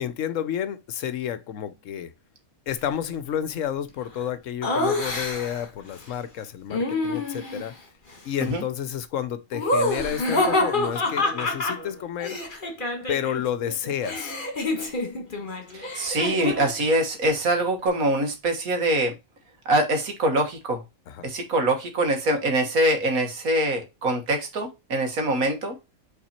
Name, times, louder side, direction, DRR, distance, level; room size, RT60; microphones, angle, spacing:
voice 1, 0.0-2.1 2.7-7.7 8.2-12.4 13.1-14.3 21.1-21.3, left 9 dB, 70° left, 1.0 m, -30 dB
Laughter, 4.6-5.7 6.7-7.7 9.5-13.4 13.7-16.8, left 2 dB, 35° left, 1.6 m, -27 dB
voice 2, 15.7-19.1 19.7-20.8 21.2-25.8, right 1 dB, 85° right, 2.0 m, -24 dB
5.8 x 4.0 x 4.3 m
omnidirectional pair, 1.5 m